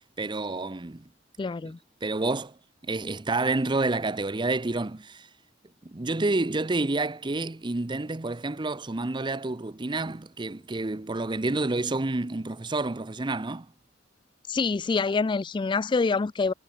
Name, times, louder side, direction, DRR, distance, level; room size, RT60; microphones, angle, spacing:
voice 1, 0.2-1.0 1.6-1.7 2.0-2.6 2.8-5.3 5.8-13.7, right 2 dB, 25° right, 0.7 m, -29 dB
voice 2, 1.4-1.8 14.5-16.5, left 4 dB, 25° left, 0.3 m, -26 dB
head